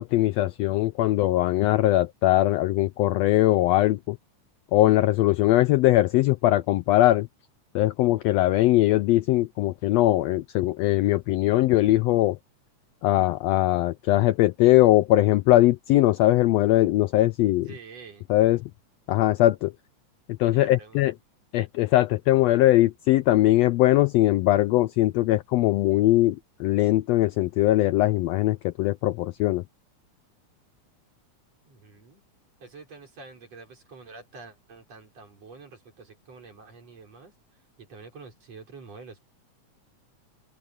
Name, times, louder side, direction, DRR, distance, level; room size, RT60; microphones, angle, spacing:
voice 1, 0.0-4.2 4.7-7.3 7.7-12.4 13.0-17.7 18.3-18.6 19.1-19.7 20.4-21.1 21.5-29.6, left 16 dB, 85° left, 1.4 m, -21 dB
voice 2, 17.7-18.3 20.5-21.1 31.7-32.2 32.6-37.3 37.8-39.2, right 4 dB, 55° right, 6.0 m, -47 dB
omnidirectional pair, 3.5 m